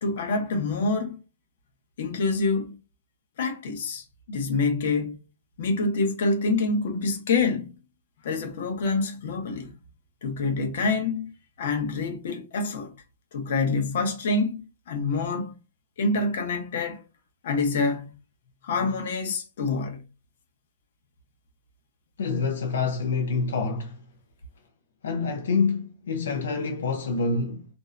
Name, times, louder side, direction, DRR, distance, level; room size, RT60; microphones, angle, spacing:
voice 1, 0.0-1.2 2.0-2.8 3.4-5.2 5.6-7.7 8.2-9.7 10.2-11.3 11.6-12.9 13.3-15.5 16.0-17.0 17.4-18.1 18.6-20.0, left 3 dB, 60° left, 0.8 m, -26 dB
voice 2, 22.2-24.0 25.0-27.7, left 4 dB, 85° left, 0.4 m, -27 dB
2.5 x 2.1 x 2.4 m
hypercardioid pair, 160°, 0 cm